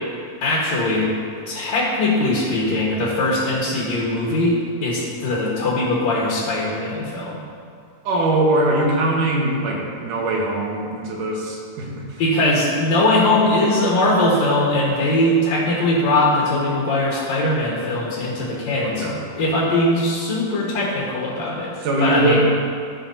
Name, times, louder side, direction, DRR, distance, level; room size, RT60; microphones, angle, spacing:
voice 1, 0.4-1.1 1.5-7.4 12.2-22.4, left 1 dB, 60° left, -6 dB, 2.5 m, -20 dB
voice 2, 8.0-12.2 18.8-19.2 21.8-22.4, right 2 dB, 70° right, -2 dB, 2.7 m, -21 dB
16.5 x 5.9 x 2.7 m, 2.3 s
omnidirectional pair, 3.9 m